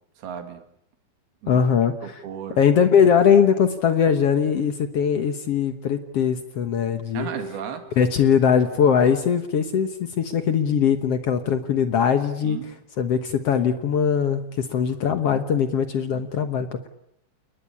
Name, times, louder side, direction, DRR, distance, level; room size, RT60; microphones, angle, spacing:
voice 1, 0.2-0.6 1.4-1.6 2.0-2.6 7.1-7.9 12.4-12.7, right 9 dB, 85° right, 7 dB, 4.1 m, -34 dB
voice 2, 1.5-2.2 2.5-7.3 8.0-12.6 13.0-16.9, left 7 dB, 65° left, 9 dB, 1.5 m, -21 dB
sound 1, 7.2-9.7 10.7-10.8, left 1 dB, 30° left, 4.1 m, -44 dB
29.5 x 20.0 x 8.7 m, 0.78 s
omnidirectional pair, 4.3 m